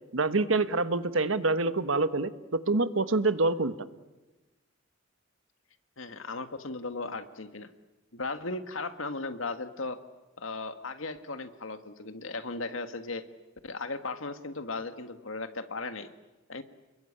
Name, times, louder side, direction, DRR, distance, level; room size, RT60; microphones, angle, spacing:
voice 1, 0.1-3.7, right 3 dB, 80° right, 12 dB, 1.3 m, -26 dB
voice 2, 6.0-7.7 8.1-10.0 10.4-13.2 13.6-16.1 16.5-16.6, left 3 dB, 80° left, 9 dB, 1.7 m, -36 dB
29.5 x 21.5 x 8.8 m, 1.1 s
head